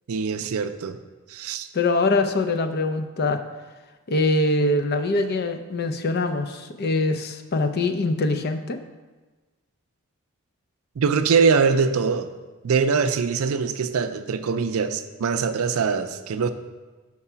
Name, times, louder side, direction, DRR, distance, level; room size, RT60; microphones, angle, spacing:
voice 1, 0.1-1.0 1.3-1.7 11.0-12.3 12.6-16.5, right 5 dB, 75° right, 9 dB, 0.4 m, -23 dB
voice 2, 1.7-3.4 4.1-8.8, left 2 dB, 45° left, 8 dB, 0.5 m, -23 dB
5.9 x 4.7 x 5.5 m, 1.3 s
head